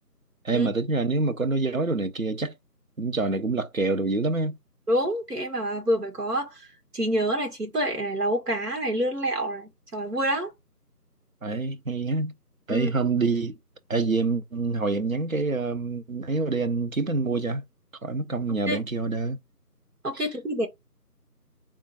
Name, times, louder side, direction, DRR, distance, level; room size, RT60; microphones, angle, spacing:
voice 1, 0.4-2.5 3.0-4.6 11.4-12.3 12.7-13.6 13.9-17.6 18.0-19.4, right 3 dB, 60° right, 0.6 m, -26 dB
voice 2, 4.9-6.5 6.9-10.5 12.7-12.9 18.7-18.8 20.0-20.7, equal, 75° right, 1.8 m, -27 dB
3.6 x 2.4 x 4.0 m
figure-of-eight pair, 175°, 48 cm